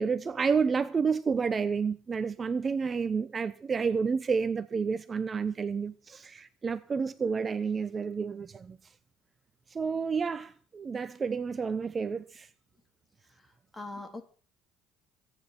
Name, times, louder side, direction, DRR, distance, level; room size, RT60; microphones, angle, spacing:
voice 1, 0.0-8.8 9.7-12.5, right 5 dB, 30° right, 0.9 m, -30 dB
voice 2, 13.2-14.2, left 2 dB, 15° left, 3.5 m, -43 dB
24.5 x 9.7 x 4.4 m
supercardioid pair, 80°, 0 cm